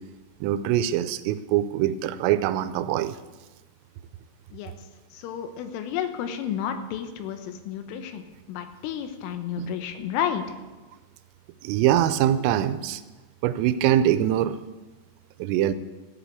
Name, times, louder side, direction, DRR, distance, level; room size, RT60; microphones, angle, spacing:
voice 1, 0.4-3.2 9.6-9.8 11.6-13.0 13.4-14.6 15.4-15.7, right 11 dB, 90° right, 12 dB, 3.3 m, -23 dB
voice 2, 5.1-10.4, left 9 dB, 80° left, 7 dB, 3.5 m, -31 dB
14.5 x 8.7 x 8.1 m, 1.2 s
omnidirectional pair, 5.9 m